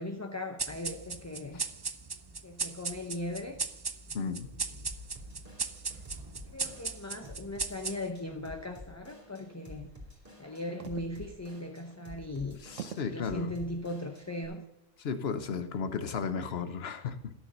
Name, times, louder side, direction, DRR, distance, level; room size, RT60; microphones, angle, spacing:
voice 1, 0.0-1.6 2.4-3.6 4.3-4.9 6.5-9.9 10.4-12.6 13.1-14.7 16.0-16.1, left 1 dB, 15° left, 4 dB, 0.7 m, -39 dB
sound 1, 0.6-8.3, right 4 dB, 35° right, 0.4 m, -38 dB
voice 2, 4.1-4.5 12.6-13.6 15.0-17.3, left 5 dB, 60° left, 10 dB, 1.1 m, -34 dB
Drum kit / Drum, 4.9-14.5, left 1 dB, 15° right, 2.8 m, -51 dB
sound 2, 10.8-11.4 11.9-12.0 12.8-13.3 14.1-14.5, right 9 dB, 85° right, 1.0 m, -44 dB
12.5 x 6.7 x 5.2 m, 0.90 s
omnidirectional pair, 1.2 m